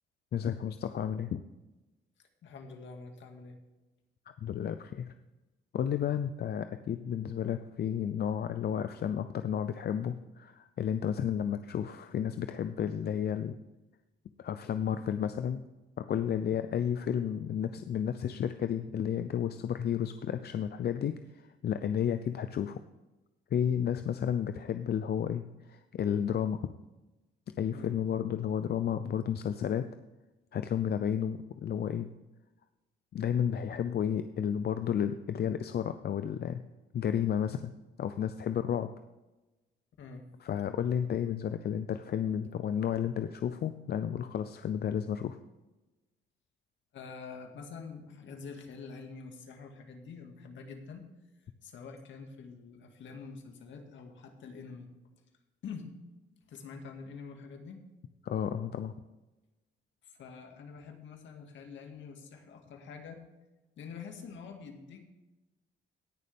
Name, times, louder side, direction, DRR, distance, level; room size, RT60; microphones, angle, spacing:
voice 1, 0.3-1.4 4.4-5.1 5.7-13.6 14.4-15.7 16.0-22.8 23.5-26.6 27.6-29.9 30.5-32.1 33.1-36.6 36.9-37.7 38.0-38.9 40.4-45.4 58.2-58.9, left 8 dB, 55° left, 10 dB, 0.6 m, -32 dB
voice 2, 2.4-3.6 16.5-16.7 27.7-28.0 40.0-40.2 46.9-51.0 51.6-54.9 55.6-55.9 56.5-57.8 60.0-63.2 63.8-65.0, left 5 dB, 70° left, 4 dB, 2.1 m, -46 dB
18.0 x 6.6 x 3.6 m, 1.1 s
cardioid pair, 90°, 20 cm